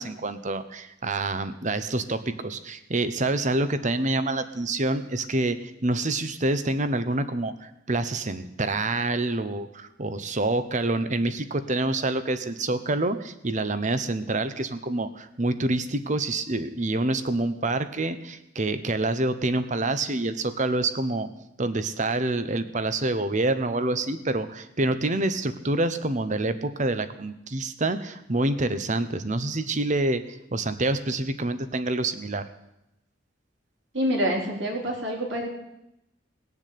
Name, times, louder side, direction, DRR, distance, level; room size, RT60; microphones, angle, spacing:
voice 1, 0.0-21.3 21.6-32.5, right 2 dB, 40° right, 11 dB, 1.0 m, -27 dB
voice 2, 33.9-35.5, equal, 65° right, -1 dB, 3.9 m, -26 dB
19.5 x 7.1 x 8.5 m, 0.87 s
head